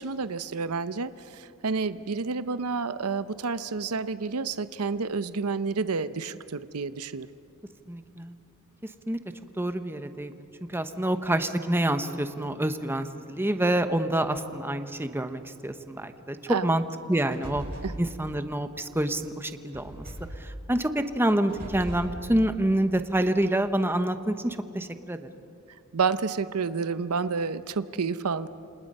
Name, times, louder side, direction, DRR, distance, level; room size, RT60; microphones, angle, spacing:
voice 1, 0.0-7.3 16.5-16.7 17.8-17.9 25.9-28.5, right 4 dB, 85° right, 13 dB, 0.7 m, -29 dB
voice 2, 7.9-8.3 9.1-9.2 9.6-10.5 10.7-16.8 17.1-17.6 18.0-20.0 20.4-25.2, right 1 dB, 10° right, 9 dB, 0.9 m, -27 dB
sound 1, 17.1-18.0 19.7-20.4 21.3-22.2, right 1 dB, 40° right, 7.8 m, -39 dB
28.0 x 27.5 x 5.5 m, 2.6 s
head